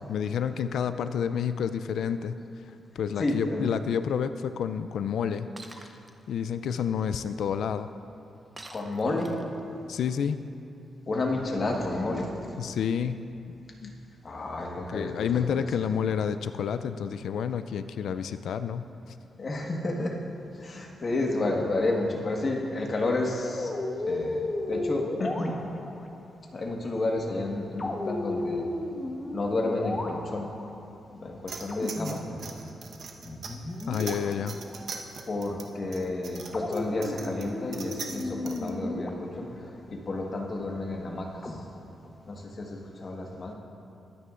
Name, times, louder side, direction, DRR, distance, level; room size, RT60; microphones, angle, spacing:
voice 1, 0.1-2.4 3.0-6.0 6.3-7.9 9.9-10.4 12.6-13.3 13.8-14.0 14.9-18.9 33.9-34.6, left 7 dB, 80° left, 11 dB, 0.3 m, -29 dB
voice 2, 3.2-3.7 8.7-9.4 11.1-12.6 14.2-15.7 19.4-20.2 20.5-23.7 24.1-25.6 26.5-28.7 29.3-30.5 31.1-32.2 35.3-41.7 42.3-43.5, left 2 dB, 40° left, 0 dB, 1.4 m, -31 dB
Shatter, 5.6-6.1 8.6-9.6, right 2 dB, 20° right, 0.7 m, -46 dB
sound 1, 23.5-26.0 27.8-30.7 31.7-33.0 33.2-34.8 36.5-39.7 41.4-42.2, left 2 dB, 25° left, 1.0 m, -34 dB
sound 2, 31.5-38.7, right 5 dB, 60° right, 1.0 m, -41 dB
22.0 x 9.5 x 2.5 m, 2.7 s
cardioid pair, 120°, 0 cm